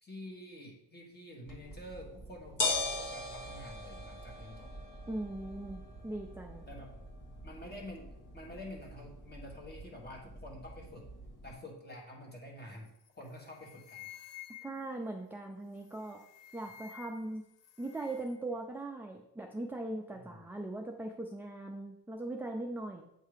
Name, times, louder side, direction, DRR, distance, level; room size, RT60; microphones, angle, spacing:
voice 1, 0.0-4.7 6.7-6.9 7.4-11.1 11.4-14.1 20.1-20.4, left 1 dB, 25° left, 0 dB, 1.4 m, -48 dB
sound 1, 1.5-11.5, left 3 dB, 45° left, 1.5 m, -41 dB
voice 2, 5.1-6.6 14.6-16.2 16.5-17.4 17.8-23.0, right 2 dB, 5° right, 1 dB, 0.3 m, -40 dB
sound 2, 12.9-13.1 13.4-15.0 15.8-17.3 17.6-18.4, left 12 dB, 90° left, 0.6 m, -52 dB
8.1 x 2.8 x 5.0 m, 0.80 s
wide cardioid pair, 140°, 42 cm